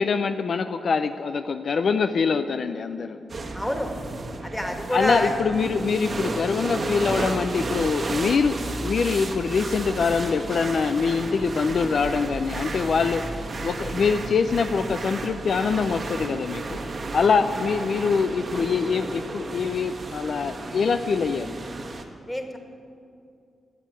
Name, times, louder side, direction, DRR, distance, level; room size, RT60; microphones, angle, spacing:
voice 1, 0.0-3.2 4.9-13.2 13.6-16.8 17.1-21.5, left 5 dB, 65° left, 9 dB, 0.5 m, -24 dB
sound 1, 3.3-22.0, right 2 dB, 45° right, 1.5 m, -33 dB
voice 2, 3.5-3.9 4.4-5.3 17.2-17.4 22.3-22.6, left 1 dB, 5° left, 4 dB, 1.8 m, -27 dB
14.0 x 8.3 x 8.9 m, 2.5 s
cardioid pair, 80°, 0 cm